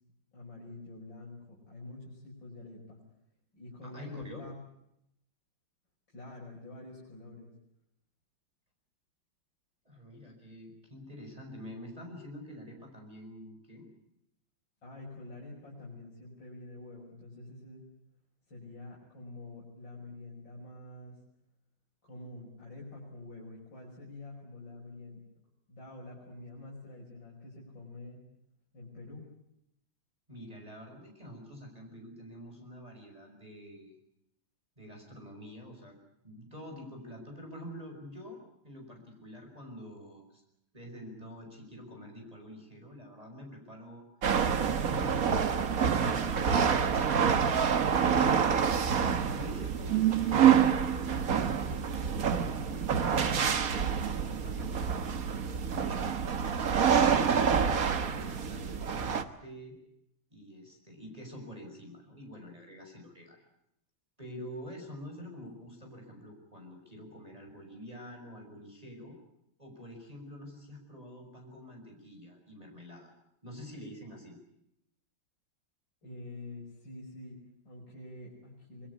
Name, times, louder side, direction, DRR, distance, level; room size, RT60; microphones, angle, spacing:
voice 1, 0.3-3.0 3.5-4.6 6.1-7.5 14.8-17.9 18.5-21.2 22.0-25.2 25.7-28.2 28.7-29.3 76.0-78.9, left 2 dB, 60° left, -5 dB, 7.0 m, -47 dB
voice 2, 3.8-4.4 9.9-13.9 30.3-33.9 34.8-36.0 36.2-40.4 40.7-44.0 44.6-45.5 45.8-46.9 47.2-50.5 50.9-51.8 52.3-56.0 56.5-57.5 57.7-59.7 60.3-63.4 64.2-69.2 69.6-73.1 73.4-74.4, equal, 15° right, 1 dB, 5.8 m, -47 dB
sound 1, 44.2-59.2, right 7 dB, 45° right, 1.6 m, -27 dB
24.5 x 22.5 x 8.4 m, 0.78 s
omnidirectional pair, 2.2 m